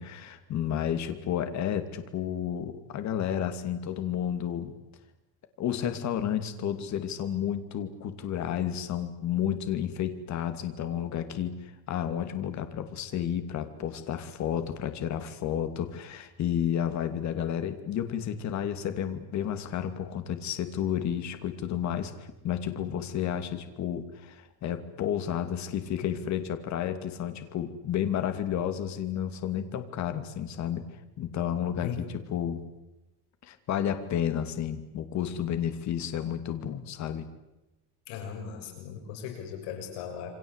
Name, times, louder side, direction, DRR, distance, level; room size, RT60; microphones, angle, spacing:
voice 1, 0.0-4.8 5.6-22.1 22.4-30.8 31.2-32.6 33.4-37.3, left 9 dB, 40° left, 9 dB, 2.7 m, -31 dB
voice 2, 31.8-32.2 38.1-40.3, left 8 dB, 80° left, 3 dB, 6.6 m, -38 dB
28.0 x 25.0 x 8.2 m, 0.97 s
cardioid pair, 160°, 41 cm